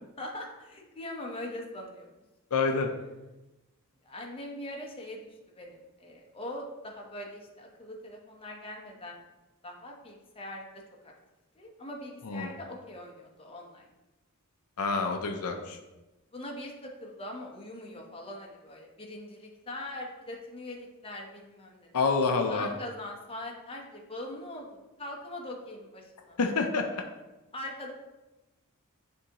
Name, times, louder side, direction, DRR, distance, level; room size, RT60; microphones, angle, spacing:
voice 1, 0.2-2.1 4.0-5.2 5.5-9.2 9.6-10.6 11.0-11.1 11.6-13.9 16.3-24.7 25.0-26.4 27.5-27.9, left 1 dB, 25° left, 0 dB, 0.9 m, -42 dB
voice 2, 2.5-2.9 12.2-12.5 14.8-15.8 21.9-22.7 26.4-27.0, left 4 dB, 75° left, 4 dB, 0.6 m, -27 dB
9.6 x 3.6 x 2.9 m, 1.1 s
head